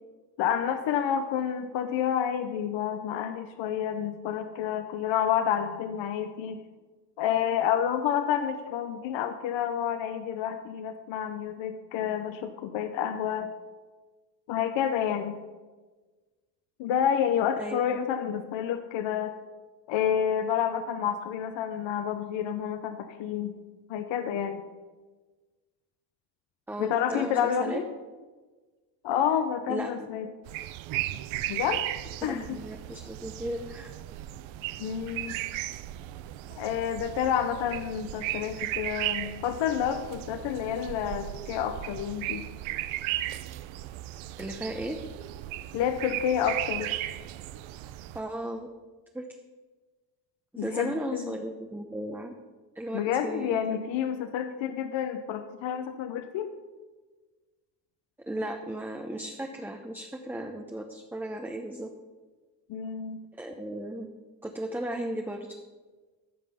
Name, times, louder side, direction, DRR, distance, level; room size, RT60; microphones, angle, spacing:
voice 1, 0.4-6.6 7.2-13.5 14.5-15.4 16.8-19.4 19.9-23.5 23.9-24.6 26.8-27.8 29.0-30.3 31.5-31.8 32.2-32.6 34.8-35.4 36.5-42.5 45.7-46.9 50.6-51.4 52.9-56.5 62.7-63.2, left 9 dB, 70° left, 9 dB, 0.9 m, -29 dB
voice 2, 17.6-18.0 26.7-27.8 29.7-30.3 32.2-33.9 44.4-45.0 48.1-48.7 49.1-49.2 50.5-52.3 52.8-53.6 58.3-61.9 63.4-64.1 64.4-65.5, right 1 dB, 5° right, 3 dB, 0.8 m, -35 dB
sound 1, 30.5-48.2, right 14 dB, 80° right, 0.7 m, -36 dB
14.5 x 5.3 x 5.6 m, 1.3 s
supercardioid pair, 85°, 46 cm